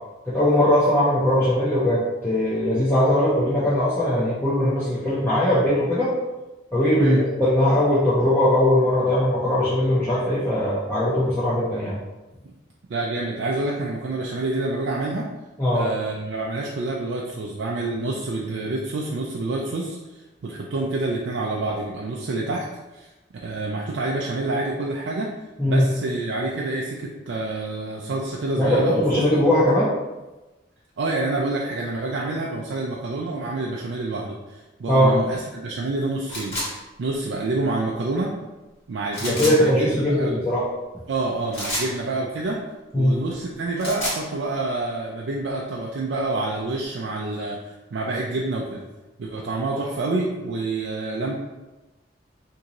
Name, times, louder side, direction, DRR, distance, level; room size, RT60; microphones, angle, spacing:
voice 1, 0.3-6.1 6.7-12.0 15.6-15.8 25.6-25.8 28.6-29.9 34.9-35.1 39.3-40.6 42.9-43.2, left 1 dB, 10° left, -11 dB, 0.6 m, -20 dB
voice 2, 12.9-15.3 15.7-20.0 20.4-22.7 22.9-23.1 23.4-25.3 25.6-29.4 31.0-36.6 37.0-38.3 38.9-40.4 41.1-42.6 42.9-48.8 49.2-51.3, right 2 dB, 85° right, -2 dB, 0.4 m, -27 dB
sound 1, 36.3-36.7 39.1-39.6 41.5-41.9 43.6-44.2, left 1 dB, 35° left, 1.3 m, -28 dB
3.7 x 2.7 x 2.9 m, 1.1 s
head